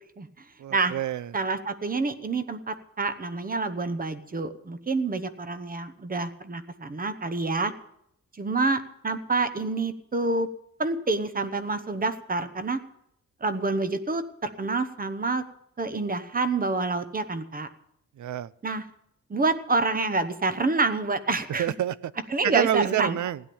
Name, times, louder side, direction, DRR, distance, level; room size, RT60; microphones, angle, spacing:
voice 1, 0.6-1.3 18.2-18.5 21.6-22.1 22.4-23.4, right 11 dB, 75° right, 19 dB, 0.5 m, -27 dB
voice 2, 1.3-7.7 8.4-10.5 10.8-12.8 13.4-15.4 15.8-17.7 18.6-18.8 19.3-21.7 22.3-23.2, right 3 dB, 30° right, 11 dB, 0.9 m, -27 dB
16.0 x 10.5 x 7.0 m, 0.77 s
wide cardioid pair, 170°, 30 cm